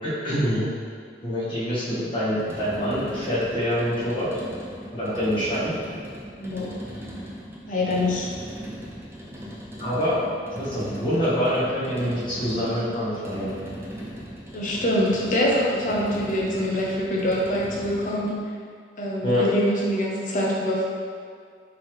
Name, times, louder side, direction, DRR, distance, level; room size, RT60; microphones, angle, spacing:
voice 1, 0.0-0.7 1.2-4.4 4.9-5.7 9.8-10.2 10.5-13.5 19.2-19.5, equal, 25° left, -11 dB, 1.2 m, -25 dB
sound 1, 2.3-18.5, equal, 15° right, 0.4 m, -38 dB
voice 2, 6.4-6.7 7.7-8.3 14.5-18.3 19.0-20.9, left 1 dB, 45° left, -4 dB, 0.6 m, -24 dB
3.7 x 3.2 x 3.0 m, 2.1 s
head